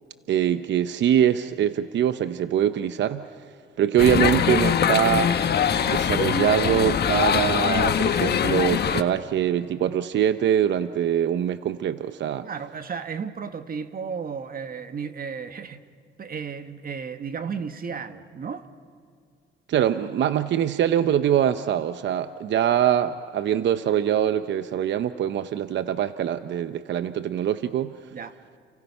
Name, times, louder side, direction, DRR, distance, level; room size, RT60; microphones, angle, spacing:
voice 1, 0.3-3.4 3.8-5.3 5.8-12.5 19.7-27.9, right 10 dB, 65° right, 11 dB, 0.8 m, -23 dB
sound 1, 4.0-9.0, left 8 dB, 55° left, 1.3 m, -22 dB
voice 2, 12.4-15.8 16.2-18.6 28.1-28.3, right 6 dB, 45° right, 9 dB, 1.7 m, -34 dB
30.0 x 29.5 x 5.6 m, 2.2 s
cardioid pair, 90°, 20 cm